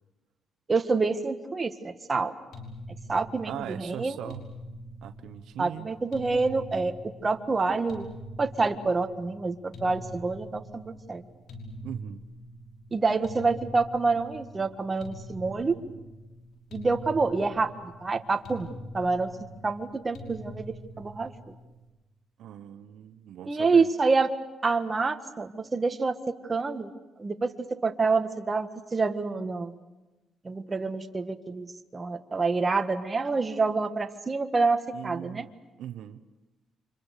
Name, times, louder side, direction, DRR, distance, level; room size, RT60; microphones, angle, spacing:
voice 1, 0.7-2.3 3.1-4.2 5.6-6.9 7.2-8.1 8.4-11.2 12.9-15.8 16.7-18.7 18.9-19.3 19.6-21.5 23.4-24.3 24.6-26.2 26.5-26.9 27.2-29.8 30.4-35.5, right 4 dB, 30° right, 8 dB, 1.7 m, -27 dB
sound 1, 2.5-21.8, equal, 80° left, 5.6 m, -44 dB
voice 2, 3.5-4.4 5.0-5.9 11.8-12.2 22.4-23.9 34.9-35.5 35.8-36.2, right 11 dB, 80° right, 8 dB, 0.9 m, -39 dB
29.0 x 25.5 x 6.7 m, 1.1 s
cardioid pair, 90°, 0 cm